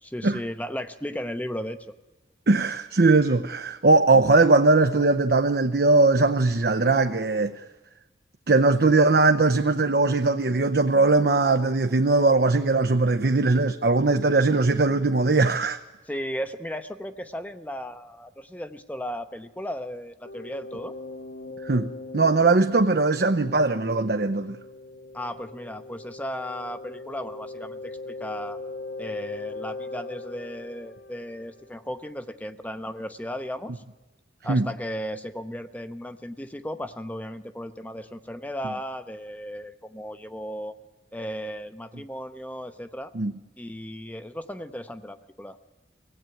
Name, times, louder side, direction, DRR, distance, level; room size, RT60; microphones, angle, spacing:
voice 1, 0.0-1.9 16.1-20.9 25.1-28.6 29.0-33.8 34.4-40.7 41.1-43.1 43.6-45.6, equal, 10° left, 0.8 m, -35 dB
voice 2, 2.5-7.5 8.5-15.8 21.6-24.6 34.5-34.7 43.1-43.3, right 3 dB, 60° right, 0.7 m, -20 dB
sound 1, 20.2-31.9, left 2 dB, 85° left, 1.8 m, -40 dB
24.0 x 17.0 x 9.1 m
head